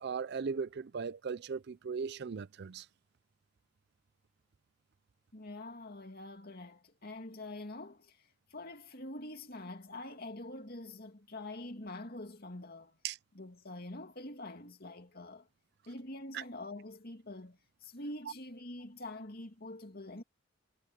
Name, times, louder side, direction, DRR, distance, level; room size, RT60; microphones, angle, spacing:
voice 1, 0.0-2.8 13.0-13.2 16.3-16.4, right 5 dB, 55° right, 0.4 m, -38 dB
voice 2, 5.3-8.2 8.5-13.0 13.3-15.5 15.9-20.2, left 2 dB, 45° left, 2.6 m, -45 dB
head